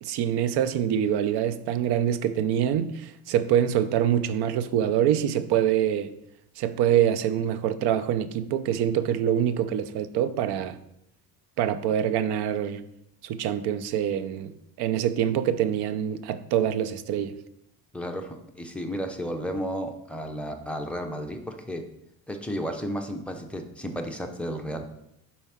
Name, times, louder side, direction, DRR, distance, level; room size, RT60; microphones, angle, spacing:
voice 1, 0.0-6.1 6.6-10.8 11.6-12.8 13.2-14.5 14.8-17.3, right 10 dB, 70° right, 0.6 m, -25 dB
voice 2, 17.9-21.8 22.3-24.9, equal, 5° left, 0.6 m, -33 dB
4.6 x 4.3 x 5.7 m
cardioid pair, 130°, 40 cm